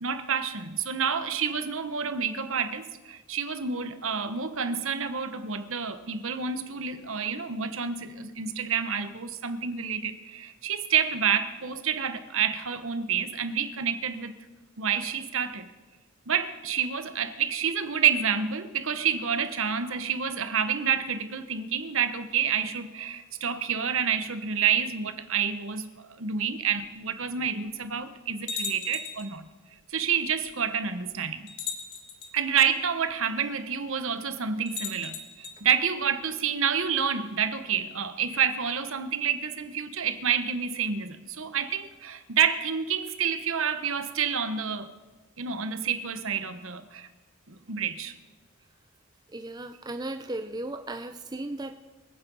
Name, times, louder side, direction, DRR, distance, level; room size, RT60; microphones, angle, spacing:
voice 1, 0.0-14.4 14.8-15.6 16.3-29.5 29.9-31.5 32.3-44.9 45.4-47.1 47.5-48.1, right 7 dB, 65° right, 1.1 m, -28 dB
sound 1, 26.8-26.9 27.7-27.8 28.5-29.3 30.5-30.6 31.5-32.3 34.7-35.6, left 5 dB, 50° left, 2.1 m, -36 dB
voice 2, 49.3-51.7, right 2 dB, 20° right, 0.6 m, -36 dB
24.0 x 9.0 x 5.5 m
head